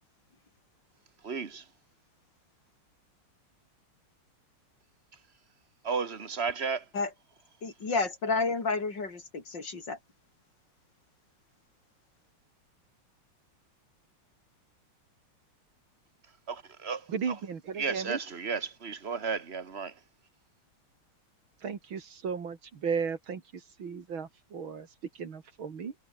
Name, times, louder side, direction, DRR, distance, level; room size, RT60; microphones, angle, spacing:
voice 1, 1.2-1.7 5.8-6.9 16.5-17.1 17.8-20.0, right 5 dB, 30° right, 1.7 m, -33 dB
voice 2, 7.6-10.0, left 3 dB, 55° left, 4.5 m, -30 dB
voice 3, 17.1-18.2 21.6-25.9, right 6 dB, 65° right, 3.0 m, -35 dB
omnidirectional pair, 2.4 m